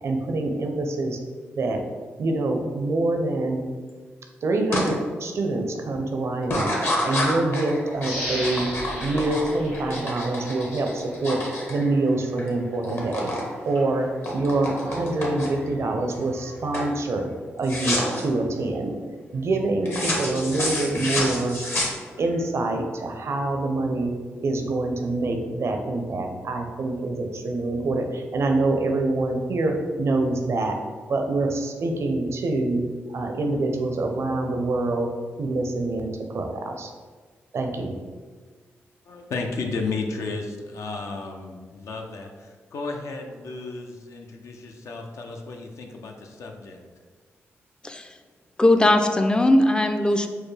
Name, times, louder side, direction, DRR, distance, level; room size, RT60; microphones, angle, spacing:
voice 1, 0.0-1.2 1.6-1.8 2.2-3.6 4.4-6.7 7.0-8.7 9.0-11.4 11.7-13.3 13.6-17.3 17.6-18.9 19.3-21.6 22.2-24.1 24.4-30.8 31.1-32.8 33.1-35.1 35.4-36.9 37.5-37.9, right 2 dB, 60° right, 4 dB, 0.5 m, -25 dB
sound 1, 4.7-4.9 5.3-5.8 6.4-12.5 12.7-13.5 13.8-15.7 16.2-16.5 16.7-17.0 17.6-18.2 19.9-22.4, left 1 dB, 50° left, 1.1 m, -29 dB
sound 2, 8.0-10.7 11.2-11.3, left 1 dB, 90° left, 1.2 m, -34 dB
voice 2, 39.1-46.8, left 3 dB, 70° left, 3 dB, 0.5 m, -33 dB
voice 3, 48.6-50.3, left 1 dB, 15° left, 6 dB, 0.4 m, -19 dB
4.5 x 2.2 x 3.2 m, 1.5 s
supercardioid pair, 55°, 5 cm